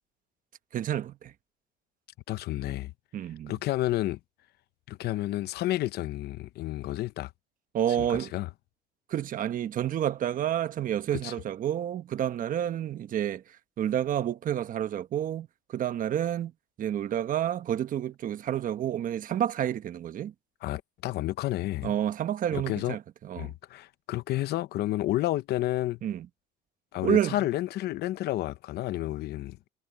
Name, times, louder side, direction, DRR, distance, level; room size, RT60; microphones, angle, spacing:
voice 1, 0.7-1.3 3.1-3.5 7.7-8.3 9.1-13.4 13.8-16.5 16.8-20.3 21.8-23.5 26.0-26.3 27.0-27.4, right 10 dB, 55° right, 1.2 m, -29 dB
voice 2, 2.3-2.9 3.5-4.2 4.9-7.3 7.9-8.5 11.1-11.3 20.6-22.0 22.5-23.0 23.4-26.0 26.9-29.6, left 15 dB, 75° left, 0.8 m, -31 dB
cardioid pair, 110°, 17 cm